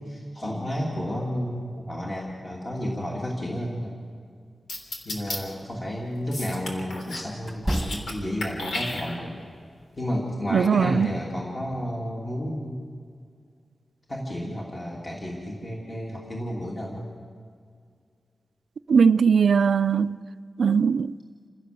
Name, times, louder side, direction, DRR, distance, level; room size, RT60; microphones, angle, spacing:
voice 1, 0.0-3.9 5.0-9.4 10.0-12.8 14.1-17.1, equal, 25° left, 2.9 m, -31 dB
sound 1, 4.7-5.4 6.3-7.3 7.6-8.1 8.4-9.4, left 2 dB, 90° left, 3.4 m, -33 dB
sound 2, 5.2-5.4 7.4-8.4, right 1 dB, ahead, 2.2 m, -31 dB
voice 2, 10.5-11.2 18.9-20.2 20.6-21.1, right 6 dB, 75° right, 0.5 m, -20 dB
28.5 x 16.5 x 6.9 m
wide cardioid pair, 155°, 0 cm